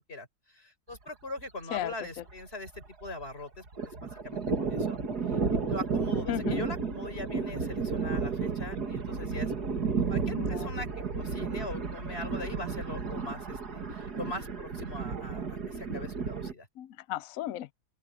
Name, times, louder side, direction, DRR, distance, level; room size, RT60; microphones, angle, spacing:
voice 1, 0.1-5.0 5.3-5.4 5.7-9.5 10.1-10.9 11.1-16.7, left 2 dB, 30° left, 5.1 m, -41 dB
Thunder, 0.9-1.1 1.4-1.5 1.8-3.3 3.5-16.5, right 5 dB, 60° right, 2.7 m, -32 dB
voice 2, 6.3-6.6 10.3-10.7 16.8-17.7, left 12 dB, 75° left, 0.7 m, -34 dB
open air
omnidirectional pair, 2.0 m